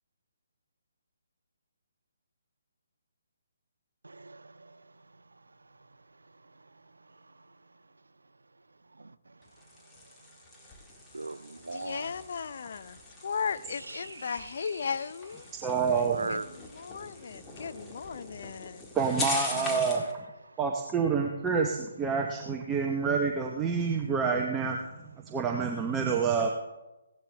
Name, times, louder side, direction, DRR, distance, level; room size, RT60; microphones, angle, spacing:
voice 1, 4.0-4.8 9.0-9.1 11.1-12.1 14.0-14.4 16.1-16.4 19.5-19.8, right 3 dB, 70° right, 0.5 m, -38 dB
sound 1, 9.4-20.1, left 2 dB, 10° left, 1.7 m, -41 dB
voice 2, 11.7-15.5 16.3-18.9, left 6 dB, 50° left, 0.6 m, -36 dB
voice 3, 15.6-16.4 18.9-20.3 20.6-26.5, right 5 dB, 15° right, 0.8 m, -28 dB
16.5 x 11.5 x 3.4 m
figure-of-eight pair, 140°, 0 cm